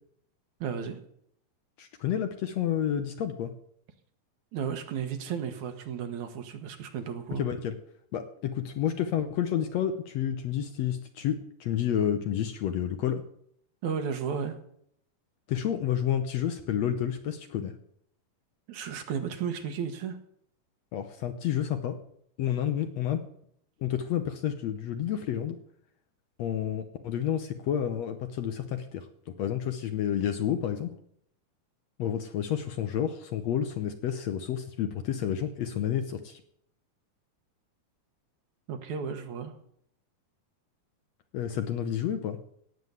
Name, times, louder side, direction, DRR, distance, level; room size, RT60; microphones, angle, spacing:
voice 1, 0.6-1.0 4.5-7.4 13.8-14.6 18.7-20.2 38.7-39.5, right 7 dB, 70° right, 7 dB, 2.6 m, -33 dB
voice 2, 1.8-3.5 7.4-7.8 8.1-13.2 15.5-17.7 20.9-22.0 22.4-23.2 23.8-25.6 26.4-29.1 29.4-30.9 32.0-36.4 41.3-42.4, left 10 dB, 70° left, 8 dB, 1.8 m, -30 dB
17.5 x 7.5 x 8.0 m, 0.70 s
omnidirectional pair, 3.7 m